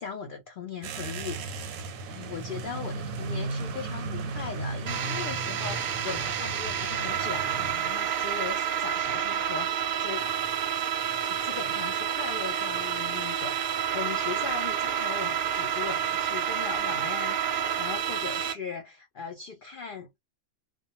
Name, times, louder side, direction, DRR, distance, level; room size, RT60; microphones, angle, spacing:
voice 1, 0.0-1.8 2.1-10.2 11.3-20.2, left 6 dB, 85° left, 0.4 m, -39 dB
sound 1, 0.8-7.7, right 3 dB, 90° right, 1.0 m, -36 dB
sound 2, 4.9-18.5, right 9 dB, 65° right, 0.5 m, -29 dB
2.2 x 2.1 x 2.8 m
omnidirectional pair, 1.4 m